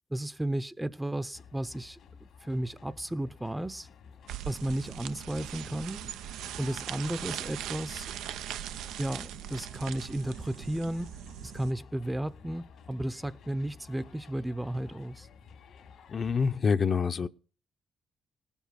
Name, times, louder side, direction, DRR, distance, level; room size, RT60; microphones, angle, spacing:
voice 1, 0.1-3.9 4.5-6.1 6.6-8.1 9.0-11.2 11.4-15.3, right 1 dB, 10° right, 0.7 m, -34 dB
sound 1, 1.3-16.6, left 6 dB, 70° left, 1.9 m, -53 dB
sound 2, 4.3-11.7, right 12 dB, 90° right, 0.5 m, -40 dB
voice 2, 16.1-17.3, left 5 dB, 45° left, 0.7 m, -26 dB
18.5 x 7.2 x 5.8 m
cardioid pair, 90°, 0 cm